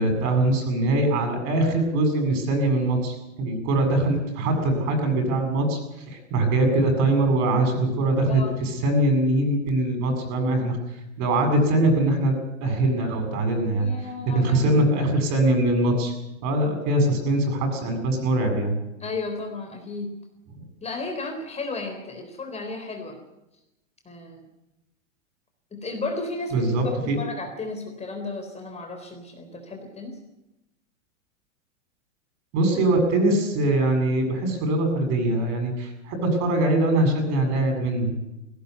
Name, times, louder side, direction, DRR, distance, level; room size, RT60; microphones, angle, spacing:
voice 1, 0.0-5.8 6.1-10.8 11.2-12.3 12.6-13.9 14.2-16.1 16.4-18.8 20.6-20.7 26.5-27.2 32.5-38.1, right 1 dB, 45° right, 5 dB, 7.6 m, -22 dB
voice 2, 13.7-14.6 19.0-20.2 20.8-23.2 24.1-24.4 25.7-30.2, left 3 dB, 15° left, 4 dB, 3.8 m, -34 dB
18.0 x 17.0 x 9.6 m, 0.94 s
hypercardioid pair, 115°, 39 cm